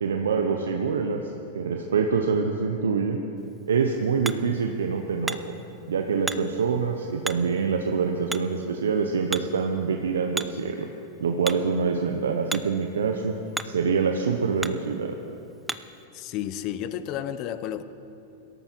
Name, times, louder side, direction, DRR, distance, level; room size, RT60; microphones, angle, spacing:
voice 1, 0.0-1.2 1.5-3.2 3.7-5.6 5.9-10.9 11.2-13.3 13.6-15.1, right 5 dB, 90° right, 4 dB, 0.9 m, -25 dB
Hammer, 3.4-16.0, right 2 dB, 5° right, 0.5 m, -39 dB
voice 2, 16.1-17.8, left 10 dB, 45° left, 12 dB, 0.8 m, -32 dB
17.5 x 13.0 x 4.6 m, 2.9 s
hypercardioid pair, 115°, 0 cm